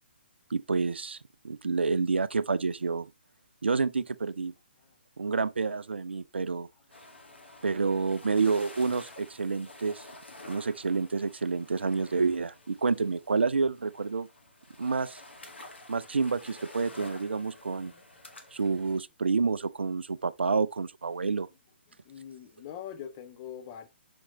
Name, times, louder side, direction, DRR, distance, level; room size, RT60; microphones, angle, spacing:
voice 1, 0.5-1.2 1.4-3.1 3.6-4.5 5.2-6.7 7.6-10.1 10.5-14.3 14.8-15.2 15.9-17.9 18.5-21.5, right 4 dB, 75° right, 0.4 m, -29 dB
sound 1, 6.9-19.0, left 2 dB, 75° left, 1.0 m, -50 dB
voice 2, 22.0-23.9, left 9 dB, 30° left, 0.7 m, -43 dB
5.2 x 2.9 x 2.7 m
figure-of-eight pair, 130°, 6 cm